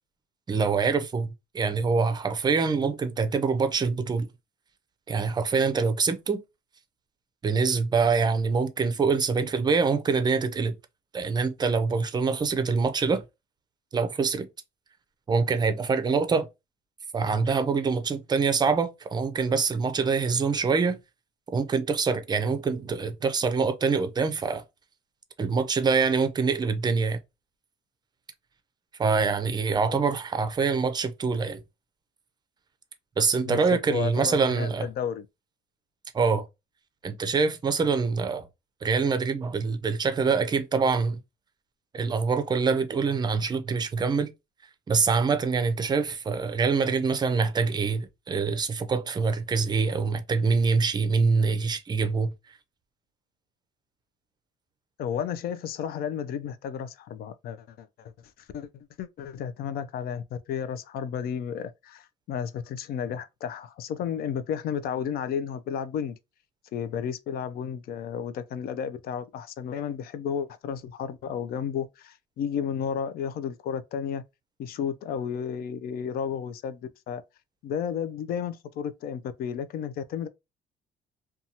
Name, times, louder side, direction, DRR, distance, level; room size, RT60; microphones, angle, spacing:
voice 1, 0.5-4.3 5.1-6.4 7.4-10.7 11.1-13.2 13.9-14.5 15.3-16.5 17.1-21.0 21.5-24.6 25.4-27.2 29.0-31.6 33.2-34.9 36.1-36.4 37.0-38.5 38.8-41.2 41.9-44.3 44.9-52.3, right 5 dB, 25° right, 0.5 m, -25 dB
voice 2, 33.4-35.2 55.0-58.1 58.5-66.2 66.7-74.2 74.6-77.2 77.6-80.3, left 8 dB, 65° left, 0.4 m, -32 dB
2.7 x 2.3 x 2.7 m
cardioid pair, 110°, 17 cm